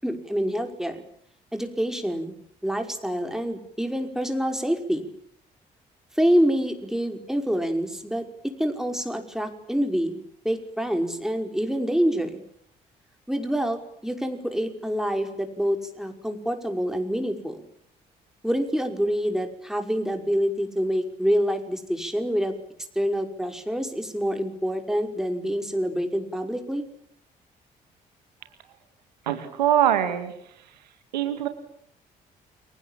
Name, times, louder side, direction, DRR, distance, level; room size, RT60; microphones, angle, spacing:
voice 1, 0.0-1.1 1.5-2.3 2.6-5.1 6.2-10.2 10.4-12.4 13.3-17.6 18.4-22.5 23.0-26.8, equal, ahead, 5 dB, 5.5 m, -26 dB
voice 2, 29.3-30.3 31.1-31.5, right 10 dB, 85° right, 9 dB, 2.1 m, -23 dB
29.5 x 24.0 x 7.5 m, 0.70 s
figure-of-eight pair, 45°, 21 cm